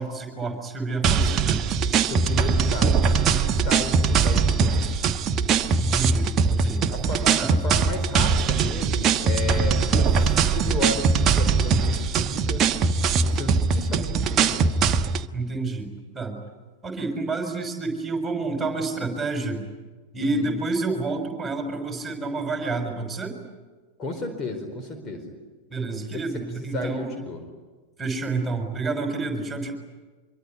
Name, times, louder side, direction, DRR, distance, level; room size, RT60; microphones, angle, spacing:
voice 1, 0.0-1.6 5.8-6.8 7.4-7.6 15.3-16.4 16.8-19.6 20.1-23.4 25.7-27.1 28.0-29.7, right 3 dB, 10° right, 3 dB, 6.5 m, -29 dB
sound 1, 1.0-15.3, right 5 dB, 30° right, 1.1 m, -21 dB
voice 2, 2.0-4.9 6.9-12.7 13.2-14.8 20.2-20.5 24.0-25.2 25.9-27.4, left 1 dB, 25° left, 5 dB, 4.4 m, -33 dB
26.0 x 24.0 x 9.7 m, 1.3 s
figure-of-eight pair, 90°, 0 cm